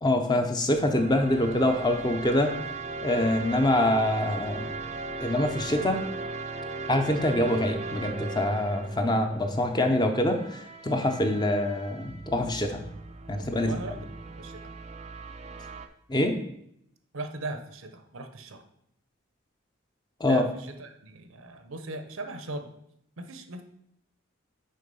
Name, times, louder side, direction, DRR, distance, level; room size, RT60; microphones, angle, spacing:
voice 1, 0.0-2.5 3.0-4.7 5.2-6.0 6.9-12.8 13.3-13.8 16.1-16.4 20.2-20.4, left 1 dB, 20° left, 5 dB, 0.6 m, -25 dB
sound 1, 0.7-15.9, right 3 dB, 30° right, 0.4 m, -38 dB
voice 2, 13.3-14.0 14.4-14.7 17.1-18.6 20.2-22.7 23.2-23.6, right 2 dB, 80° right, 7 dB, 0.9 m, -38 dB
6.5 x 4.8 x 5.4 m, 0.74 s
head